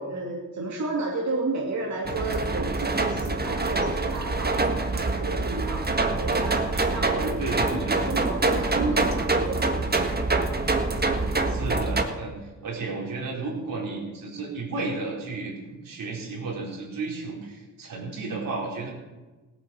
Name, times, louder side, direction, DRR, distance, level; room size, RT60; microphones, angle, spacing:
voice 1, 0.0-9.8, right 2 dB, 55° right, -1 dB, 2.3 m, -32 dB
sound 1, 2.0-12.0, right 3 dB, 30° right, 1.7 m, -25 dB
voice 2, 7.4-8.0 11.5-12.4 12.6-18.9, right 3 dB, 85° right, -2 dB, 4.5 m, -33 dB
17.0 x 9.7 x 6.5 m, 1.2 s
cardioid pair, 70°, 33 cm